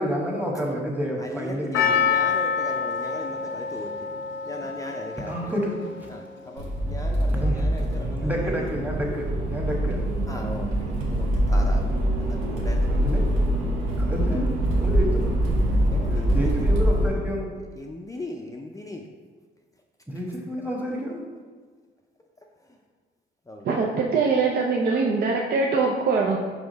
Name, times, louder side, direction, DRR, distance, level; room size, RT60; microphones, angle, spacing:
voice 1, 0.0-2.0 5.3-5.7 7.4-7.6 8.2-10.0 12.9-13.2 14.0-15.3 16.3-17.5 20.1-21.3, equal, 10° right, -1 dB, 1.3 m, -29 dB
voice 2, 1.2-4.1 4.4-5.6 6.1-8.7 10.3-11.9 12.2-12.9 14.2-14.5 15.9-16.8 17.7-19.1 20.1-20.2 22.7-22.8 23.5-24.1, left 1 dB, 15° left, 1 dB, 0.5 m, -38 dB
Percussion, 1.7-6.1 6.4-6.5, left 6 dB, 70° left, 0.6 m, -27 dB
Accelerating revving vroom, 6.6-17.1, right 1 dB, 85° right, 1.1 m, -24 dB
voice 3, 23.6-26.4, right 4 dB, 55° right, -1 dB, 0.6 m, -22 dB
5.0 x 3.7 x 5.2 m, 1.5 s
cardioid pair, 90°, 20 cm